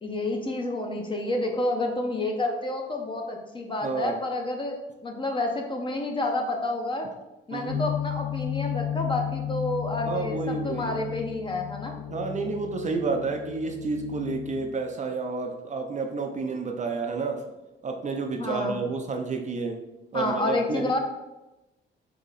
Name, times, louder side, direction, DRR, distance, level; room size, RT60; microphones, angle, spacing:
voice 1, 0.0-7.1 7.5-11.9 18.4-18.8 20.1-21.0, left 2 dB, 25° left, 2 dB, 0.7 m, -29 dB
voice 2, 3.8-4.2 7.5-7.8 10.1-10.9 12.1-17.4 17.8-19.8 20.1-21.0, right 4 dB, 40° right, 4 dB, 0.5 m, -30 dB
sound 1, 7.7-14.7, left 11 dB, 70° left, 0.6 m, -33 dB
3.8 x 2.9 x 4.0 m, 1.0 s
cardioid pair, 90°, 20 cm